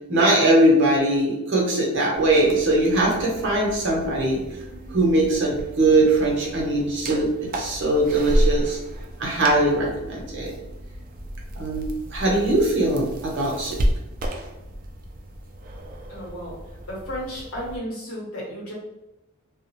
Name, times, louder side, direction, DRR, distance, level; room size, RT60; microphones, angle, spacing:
voice 1, 0.1-4.4 4.9-8.8 9.2-10.5 11.5-11.8 12.1-13.8, right 1 dB, 60° right, -2 dB, 0.8 m, -21 dB
sound 1, 2.1-17.8, equal, 40° right, 0.4 m, -32 dB
voice 2, 16.1-16.6 16.9-18.7, equal, 85° left, -5 dB, 1.1 m, -33 dB
2.4 x 2.1 x 2.9 m, 0.93 s
head